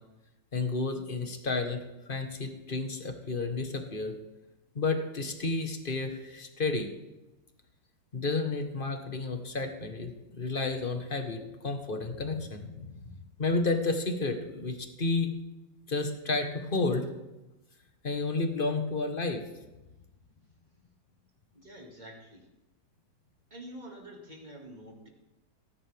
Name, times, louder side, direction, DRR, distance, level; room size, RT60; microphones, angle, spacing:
voice 1, 0.5-4.1 4.7-6.9 8.1-15.3 15.9-17.1 18.0-19.4, left 3 dB, 35° left, 6 dB, 1.3 m, -31 dB
voice 2, 21.5-22.5 23.5-25.1, right 1 dB, 25° right, 1 dB, 2.2 m, -47 dB
18.5 x 10.5 x 3.5 m, 1.0 s
omnidirectional pair, 1.9 m